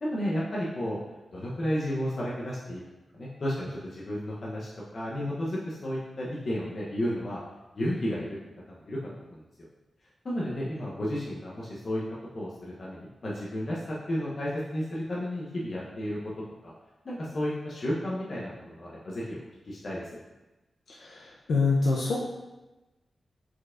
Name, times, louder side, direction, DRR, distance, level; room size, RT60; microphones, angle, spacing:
voice 1, 0.0-1.0 1.3-2.8 3.1-7.4 7.7-8.4 8.7-9.4 10.2-12.0 12.3-16.3 16.6-16.7 17.0-20.2, equal, 50° left, -6 dB, 0.7 m, -32 dB
voice 2, 20.9-22.2, left 4 dB, 85° left, -3 dB, 0.5 m, -26 dB
4.6 x 4.2 x 2.4 m, 1.1 s
wide cardioid pair, 95°, 0 cm